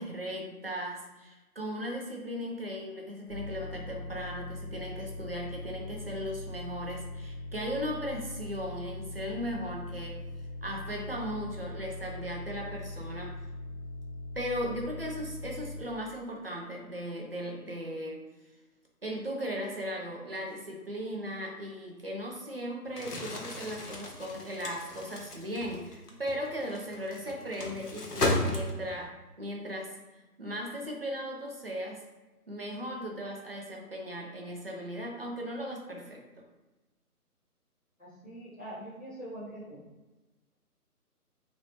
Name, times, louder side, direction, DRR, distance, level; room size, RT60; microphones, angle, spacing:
voice 1, 0.0-10.2 10.6-13.4 14.3-18.2 19.0-29.9 30.4-32.0 32.5-36.2, equal, 40° right, 0 dB, 0.5 m, -37 dB
sound 1, 3.3-15.8, left 2 dB, 40° left, 0.8 m, -41 dB
Crumpling crinkling, 22.9-29.1, left 2 dB, 85° left, 0.8 m, -35 dB
voice 2, 38.0-39.8, right 1 dB, ahead, -24 dB, 1.1 m, -43 dB
3.0 x 2.6 x 3.2 m, 1.1 s
figure-of-eight pair, 150°, 46 cm